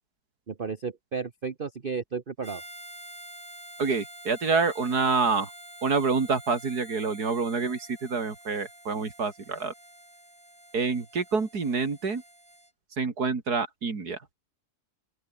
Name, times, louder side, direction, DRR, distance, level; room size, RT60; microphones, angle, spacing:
voice 1, 0.5-2.6, right 5 dB, 35° right, 1.3 m, -33 dB
Harmonica, 2.4-12.7, right 1 dB, 15° right, 6.3 m, -48 dB
voice 2, 3.8-5.5 5.8-9.7 10.7-12.2 13.0-14.2, right 4 dB, 75° right, 3.3 m, -27 dB
open air
omnidirectional pair, 1.7 m